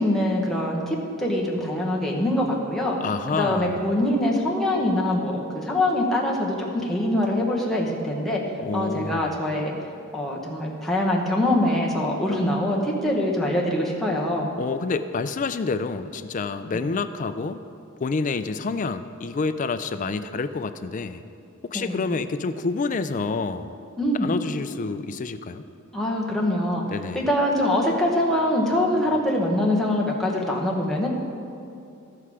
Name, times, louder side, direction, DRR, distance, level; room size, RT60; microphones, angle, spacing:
voice 1, 0.0-3.0 3.3-8.4 8.7-9.7 10.1-14.5 21.7-22.0 24.0-24.3 25.9-26.8 27.1-31.1, left 1 dB, ahead, -3 dB, 1.1 m, -24 dB
voice 2, 3.0-3.9 8.6-9.4 14.6-17.6 18.0-21.2 21.6-23.8 24.2-25.6 26.8-27.3, left 4 dB, 35° left, 11 dB, 0.3 m, -28 dB
15.0 x 5.6 x 4.8 m, 2.6 s
head